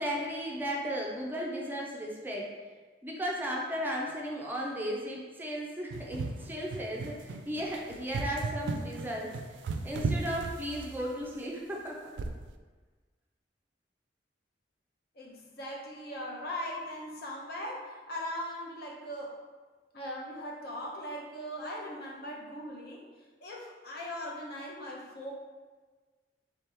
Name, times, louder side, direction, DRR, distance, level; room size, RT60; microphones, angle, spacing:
voice 1, 0.0-2.5 3.0-9.3 9.8-12.1, equal, 10° right, -2 dB, 0.4 m, -35 dB
sound 1, 5.9-11.2 12.2-12.5, right 3 dB, 80° right, 0.3 m, -35 dB
voice 2, 15.2-19.4 19.9-23.0 23.4-25.3, left 1 dB, 60° left, -2 dB, 0.7 m, -39 dB
3.7 x 2.9 x 3.3 m, 1.4 s
head